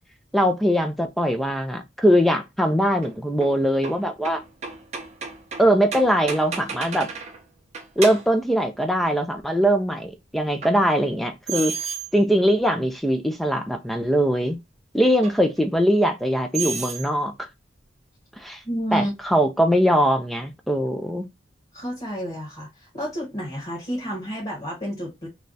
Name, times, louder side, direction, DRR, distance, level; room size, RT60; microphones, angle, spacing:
voice 1, 0.3-4.4 5.6-7.1 8.0-11.8 12.1-14.6 14.9-17.5 18.4-18.6 18.9-21.3, equal, ahead, 0.5 m, -21 dB
sound 1, 3.0-7.4 7.7-8.4 10.6-10.8 11.5-12.1 12.8-12.9 15.2-15.4 16.5-17.1, right 6 dB, 40° right, 0.7 m, -32 dB
voice 2, 18.6-19.1 21.7-25.3, equal, 35° left, 1.5 m, -30 dB
3.2 x 2.4 x 3.9 m
head